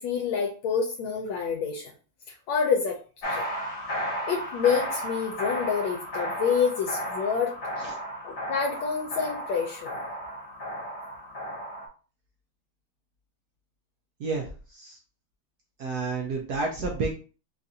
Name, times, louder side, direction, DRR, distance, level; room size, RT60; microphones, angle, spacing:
voice 1, 0.0-1.9 2.5-3.0 3.3-3.5 4.3-7.5 8.2-10.0, left 6 dB, 80° left, 1 dB, 1.3 m, -27 dB
sound 1, 3.2-11.9, equal, 55° left, 1.3 m, -34 dB
voice 2, 14.2-15.0 15.8-17.1, right 3 dB, 75° right, 1 dB, 0.9 m, -30 dB
3.8 x 2.4 x 2.7 m, 0.38 s
omnidirectional pair, 2.2 m